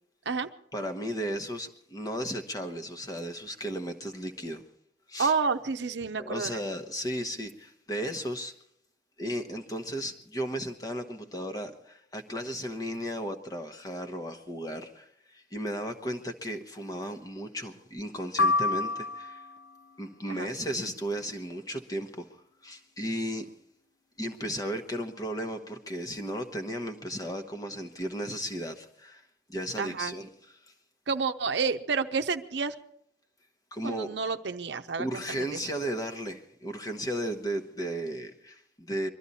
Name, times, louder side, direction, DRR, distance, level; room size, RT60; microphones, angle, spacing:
voice 1, 0.7-4.6 5.1-5.3 6.2-8.5 9.2-19.4 20.0-23.5 24.2-29.2 29.5-30.5 33.7-34.1 35.0-39.1, equal, 20° left, 1.0 m, -35 dB
voice 2, 5.2-6.5 20.3-20.5 29.8-30.2 31.1-32.7 33.8-35.7, right 5 dB, 70° right, 0.7 m, -30 dB
sound 1, 18.4-19.7, left 3 dB, 90° left, 0.7 m, -27 dB
23.0 x 13.0 x 4.1 m
head